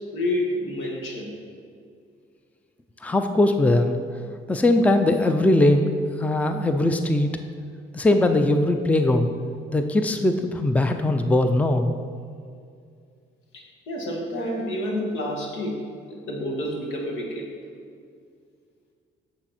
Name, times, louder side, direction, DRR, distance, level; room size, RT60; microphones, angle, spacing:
voice 1, 0.1-1.3 13.5-15.8 16.1-17.5, left 1 dB, 80° left, -2 dB, 1.9 m, -29 dB
voice 2, 3.0-4.0 4.5-7.3 7.9-9.3 9.7-12.0, left 1 dB, 5° left, 7 dB, 0.5 m, -20 dB
8.6 x 6.6 x 4.3 m, 2.2 s
cardioid pair, 90°, 20 cm